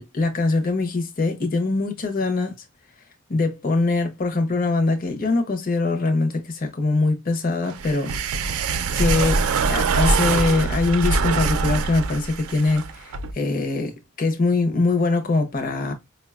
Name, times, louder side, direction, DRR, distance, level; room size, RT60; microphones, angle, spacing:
voice 1, 0.0-2.6 3.3-8.2 9.0-15.9, left 3 dB, 40° left, 0.6 m, -23 dB
sound 1, 7.7-13.3, right 4 dB, 90° right, 0.4 m, -23 dB
4.8 x 2.2 x 2.2 m
head